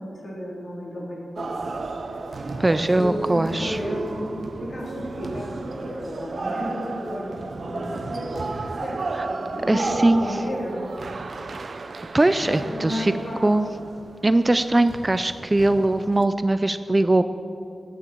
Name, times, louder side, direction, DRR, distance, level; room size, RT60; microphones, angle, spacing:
voice 1, 0.0-1.5 2.5-4.3 4.7-7.3 7.6-8.5 8.8-9.9 10.2-10.8 12.4-13.4, equal, 50° left, -5 dB, 3.8 m, -32 dB
sound 1, 1.4-16.3, right 3 dB, 60° right, 0.7 m, -33 dB
voice 2, 2.6-3.8 9.2-9.3 9.7-10.2 12.1-13.1 13.4-13.7 14.2-17.3, right 2 dB, 20° right, 11 dB, 0.4 m, -20 dB
19.0 x 9.7 x 4.5 m, 2.5 s
wide cardioid pair, 130°, 0 cm